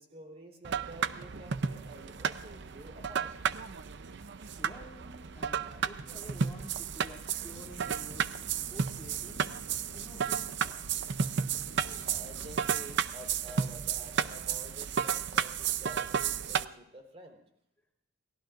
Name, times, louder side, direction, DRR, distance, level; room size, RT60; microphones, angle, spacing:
voice 1, 0.0-3.3 11.8-17.4, right 1 dB, 35° right, 2 dB, 3.8 m, -50 dB
sound 1, 0.6-16.6, right 7 dB, 65° right, 0.6 m, -33 dB
voice 2, 4.6-8.3 8.7-9.4 9.9-10.9 14.8-14.9, equal, 10° left, -3 dB, 2.8 m, -50 dB
sound 2, 7.4-13.0, left 2 dB, 80° left, 0.9 m, -51 dB
29.5 x 19.0 x 2.5 m, 0.77 s
head